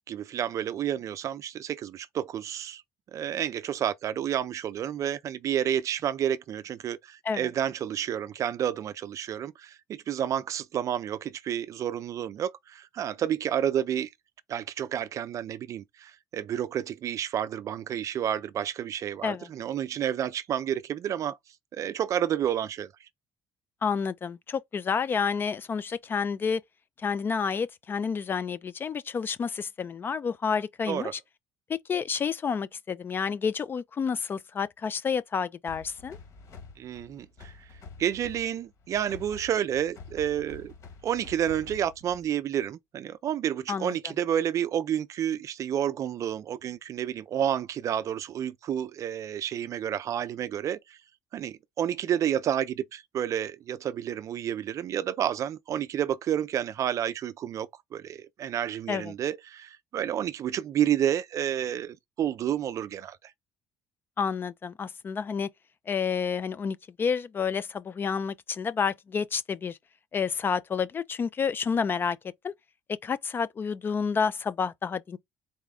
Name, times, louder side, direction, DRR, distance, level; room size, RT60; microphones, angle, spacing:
voice 1, 0.1-2.8 3.1-14.1 14.5-21.4 21.7-22.9 30.9-31.1 36.8-37.5 38.0-40.7 41.0-51.0 51.3-63.2, right 10 dB, 40° right, 0.4 m, -30 dB
voice 2, 23.8-26.6 27.0-31.2 31.7-36.2 43.7-44.0 58.9-59.1 64.2-65.5 65.9-69.8 70.1-72.2 72.4-72.5 72.9-75.2, left 6 dB, 25° left, 0.4 m, -29 dB
sound 1, 35.7-42.4, left 4 dB, 45° left, 1.7 m, -48 dB
4.1 x 3.5 x 3.7 m
cardioid pair, 150°, 8 cm